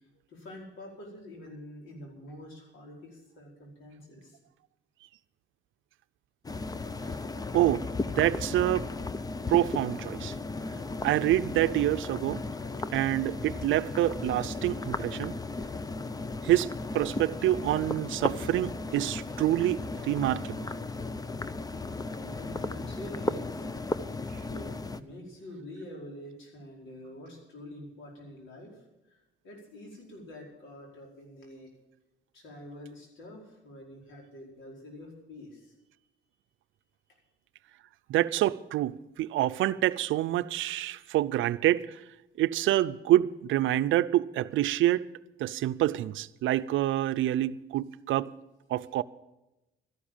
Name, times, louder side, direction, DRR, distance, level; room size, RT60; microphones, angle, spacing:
voice 1, 0.3-4.4 22.2-23.7 24.5-24.7 24.9-31.7 32.3-36.0, left 1 dB, 75° left, 4.9 m, -46 dB
sound 1, 6.4-25.0, left 3 dB, 20° left, 0.6 m, -35 dB
voice 2, 7.5-7.9 8.2-8.9 9.5-10.3 11.0-12.4 12.9-15.3 16.4-20.7 38.1-42.0 42.4-45.1 45.4-48.3 48.7-49.0, right 14 dB, 80° right, 0.5 m, -27 dB
13.0 x 11.5 x 7.3 m
cardioid pair, 90°, 20 cm